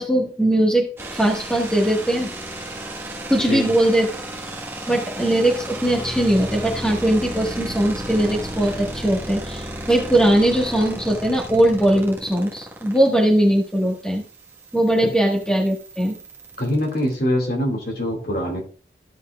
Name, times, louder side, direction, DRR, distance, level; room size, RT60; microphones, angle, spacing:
voice 1, 0.0-2.3 3.3-4.1 4.9-14.2 14.7-16.2, right 1 dB, 5° left, 0 dB, 1.3 m, -20 dB
sound 1, 1.0-17.1, right 1 dB, 15° right, 1.3 m, -33 dB
voice 2, 16.6-18.6, equal, 55° left, 1 dB, 2.2 m, -23 dB
14.5 x 5.6 x 2.3 m, 0.39 s
head